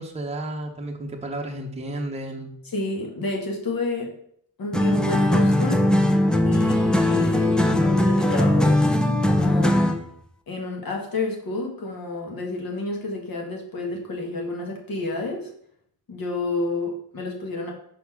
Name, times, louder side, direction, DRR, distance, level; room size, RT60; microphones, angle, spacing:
voice 1, 0.0-2.6, right 1 dB, 15° right, 1 dB, 0.8 m, -32 dB
voice 2, 2.6-4.1 4.6-5.9 6.4-8.8 9.2-9.8 10.5-15.5 16.1-17.7, left 2 dB, 55° left, 1 dB, 1.5 m, -30 dB
sound 1, 4.7-10.1, left 1 dB, ahead, 0.4 m, -20 dB
5.3 x 4.2 x 5.7 m, 0.68 s
wide cardioid pair, 175°, 41 cm